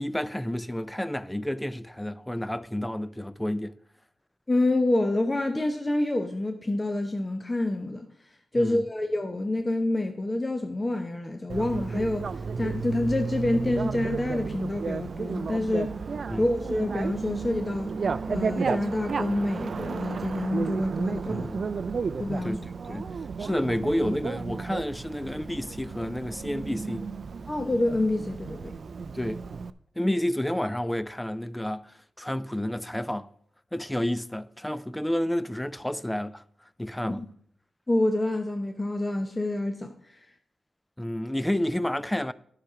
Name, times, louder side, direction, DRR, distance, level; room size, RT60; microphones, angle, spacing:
voice 1, 0.0-3.8 8.6-8.9 16.3-16.5 21.3-21.6 22.4-22.6 22.9-23.1 23.4-27.1 29.1-29.4 30.0-33.3 33.7-36.4 36.8-37.2 41.0-42.3, left 1 dB, 10° left, 0.5 m, -30 dB
voice 2, 4.5-8.1 8.5-12.3 12.6-15.9 16.4-18.0 18.3-21.5 22.2-22.6 22.9-23.0 27.5-28.7 37.1-37.3 37.9-40.2, left 1 dB, 25° left, 0.9 m, -27 dB
Bicycle, 11.5-29.7, right 5 dB, 65° right, 0.4 m, -33 dB
10.5 x 5.9 x 4.8 m
cardioid pair, 55°, 0 cm